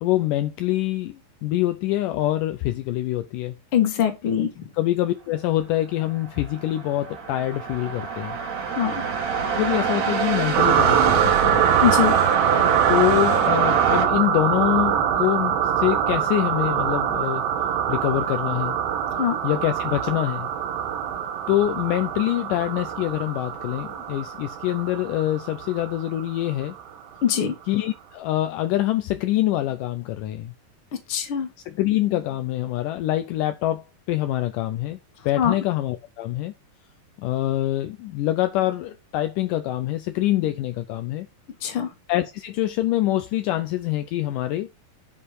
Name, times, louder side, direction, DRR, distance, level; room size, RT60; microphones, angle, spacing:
voice 1, 0.0-3.5 4.8-8.4 9.5-11.6 12.9-17.4 17.9-18.8 19.4-20.5 21.5-26.7 27.7-30.5 31.7-33.8 34.1-35.0 35.3-36.5 37.2-41.3 42.1-44.7, left 14 dB, 80° left, 2.1 m, -25 dB
voice 2, 3.7-4.7 8.8-9.0 11.8-12.2 19.2-19.4 27.2-27.5 31.1-31.5 35.4-35.6 41.6-41.9, left 9 dB, 45° left, 2.3 m, -22 dB
sound 1, 6.1-14.1, right 6 dB, 55° right, 2.8 m, -26 dB
sound 2, 10.5-26.8, right 9 dB, 80° right, 2.8 m, -24 dB
10.0 x 5.3 x 4.7 m
omnidirectional pair, 4.1 m